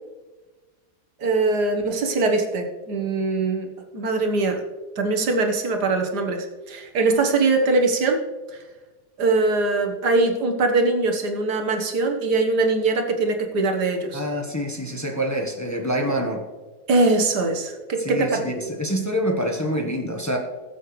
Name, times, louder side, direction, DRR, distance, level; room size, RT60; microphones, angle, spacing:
voice 1, 1.2-4.6 5.0-8.2 9.2-14.2 16.9-18.4, right 3 dB, 90° right, 3 dB, 1.9 m, -22 dB
voice 2, 14.1-16.4 18.0-20.4, equal, 10° left, 2 dB, 1.0 m, -26 dB
20.0 x 7.7 x 3.2 m, 1.3 s
omnidirectional pair, 1.7 m